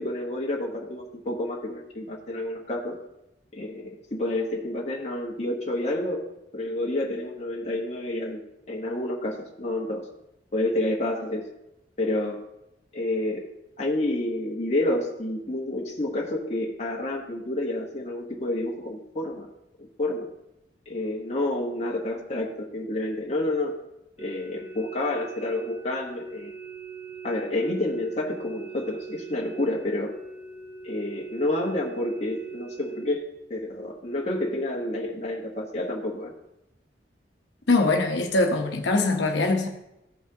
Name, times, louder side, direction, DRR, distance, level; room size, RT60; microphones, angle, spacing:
voice 1, 0.0-3.0 3.5-6.3 6.5-8.4 8.7-10.1 10.5-11.5 12.0-12.5 12.9-19.5 19.8-20.3 20.9-23.8 24.2-26.5 27.2-30.2 30.8-36.3, left 1 dB, 35° left, 1.1 m, -29 dB
sound 1, 24.2-33.2, right 5 dB, 10° right, 1.0 m, -41 dB
voice 2, 37.7-39.7, left 2 dB, 75° left, 0.9 m, -22 dB
15.0 x 5.8 x 2.8 m
head